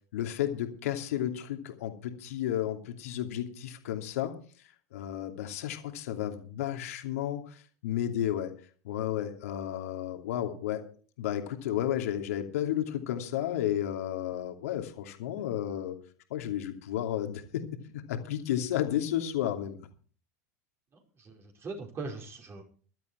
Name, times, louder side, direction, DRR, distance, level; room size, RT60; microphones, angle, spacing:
voice 1, 0.1-4.3 4.6-8.5 8.8-10.8 11.2-16.0 16.3-19.8, left 11 dB, 65° left, 5 dB, 2.8 m, -32 dB
voice 2, 21.2-22.6, right 3 dB, 30° right, 2 dB, 4.8 m, -40 dB
15.5 x 12.5 x 4.5 m, 0.42 s
hypercardioid pair, 90°, 9 cm